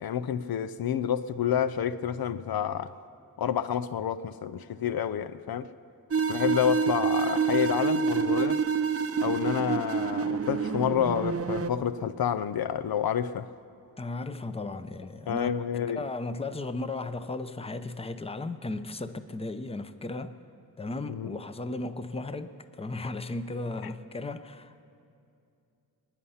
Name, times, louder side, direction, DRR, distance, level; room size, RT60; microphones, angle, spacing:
voice 1, 0.0-3.0 3.4-5.7 6.3-8.6 9.2-13.5 15.3-16.0 21.1-21.4, left 9 dB, 75° left, 0.5 m, -29 dB
sound 1, 6.1-11.7, right 6 dB, 40° right, 0.6 m, -27 dB
voice 2, 14.0-15.5 15.9-20.4 20.8-24.8, left 2 dB, 15° left, 0.6 m, -35 dB
24.5 x 9.9 x 5.7 m
wide cardioid pair, 90°, 37 cm